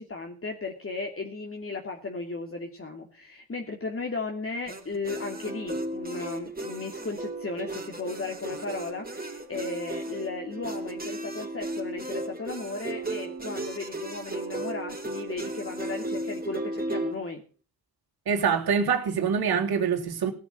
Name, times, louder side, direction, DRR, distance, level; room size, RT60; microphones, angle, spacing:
voice 1, 0.0-17.4, left 3 dB, 35° left, 3.0 m, -35 dB
sound 1, 4.7-17.2, right 1 dB, 20° right, 4.3 m, -35 dB
voice 2, 18.3-20.3, right 6 dB, 65° right, 3.4 m, -25 dB
17.5 x 6.9 x 8.3 m
hypercardioid pair, 45°, 41 cm